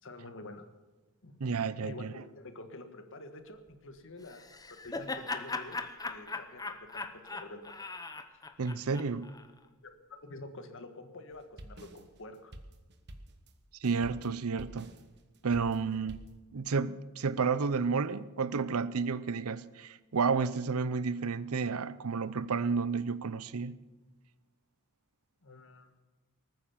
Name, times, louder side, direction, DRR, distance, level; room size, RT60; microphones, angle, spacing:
voice 1, 0.0-0.7 1.2-1.5 1.8-6.6 6.9-7.8 8.3-8.4 9.8-12.5 25.4-26.0, left 2 dB, 60° left, 1.6 m, -48 dB
voice 2, 1.4-2.1 8.6-9.3 13.8-14.9 15.4-16.2 16.5-23.7, right 5 dB, 75° right, 0.6 m, -31 dB
Laughter, 4.3-9.5, left 3 dB, 15° left, 0.8 m, -39 dB
sound 1, 11.3-16.4, right 1 dB, 50° right, 1.3 m, -50 dB
19.5 x 9.4 x 7.3 m
head